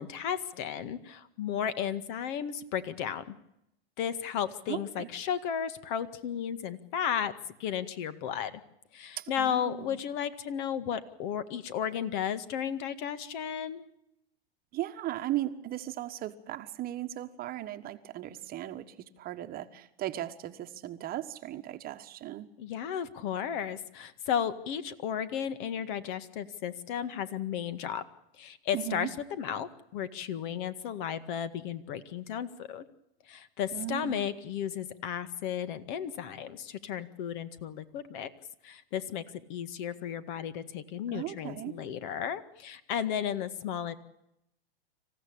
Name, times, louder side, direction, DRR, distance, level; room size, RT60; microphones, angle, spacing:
voice 1, 0.0-3.4 4.0-7.3 7.6-8.6 8.9-13.8 22.6-28.0 28.4-29.1 29.4-32.8 33.3-38.3 38.6-39.2 39.5-44.0, left 8 dB, 50° left, 13 dB, 1.9 m, -34 dB
voice 2, 4.7-5.1 9.2-10.0 14.7-22.5 28.7-29.1 33.7-34.4 41.1-41.7, right 14 dB, 30° right, 8 dB, 1.3 m, -37 dB
27.0 x 15.5 x 8.7 m, 0.81 s
hypercardioid pair, 125°, 31 cm